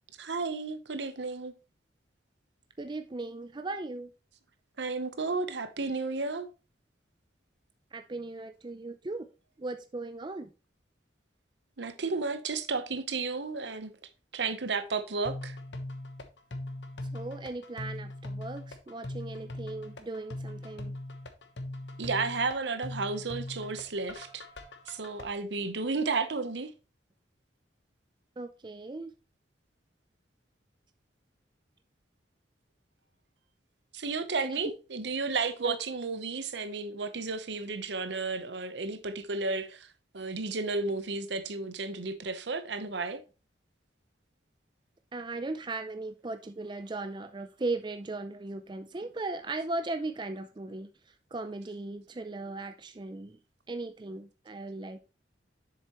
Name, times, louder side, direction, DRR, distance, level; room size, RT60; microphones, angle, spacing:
voice 1, 0.2-1.5 4.8-6.5 11.8-14.0 14.3-15.6 22.0-24.4 24.9-26.7 33.9-39.9 40.1-43.2, right 4 dB, 70° right, 0.9 m, -33 dB
voice 2, 2.8-4.1 7.9-9.3 9.6-10.5 17.1-20.9 28.4-29.1 34.4-34.6 35.6-35.8 45.1-50.9 51.3-53.4 53.7-55.0, right 2 dB, 25° right, 0.5 m, -37 dB
sound 1, 15.2-25.2, left 1 dB, 70° left, 1.1 m, -40 dB
7.5 x 6.9 x 3.0 m
head